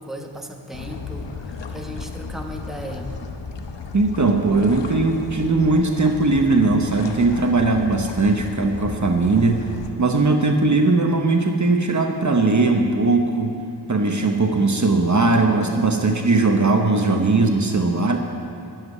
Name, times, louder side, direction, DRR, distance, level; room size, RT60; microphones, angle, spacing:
voice 1, 0.0-3.3, equal, ahead, 2 dB, 1.2 m, -36 dB
sound 1, 0.7-9.9, left 4 dB, 85° left, 1.0 m, -35 dB
voice 2, 3.9-9.7 10.0-13.6 13.9-18.2, right 3 dB, 45° right, 3 dB, 1.0 m, -19 dB
11.5 x 7.5 x 9.4 m, 2.7 s
wide cardioid pair, 60°, 42 cm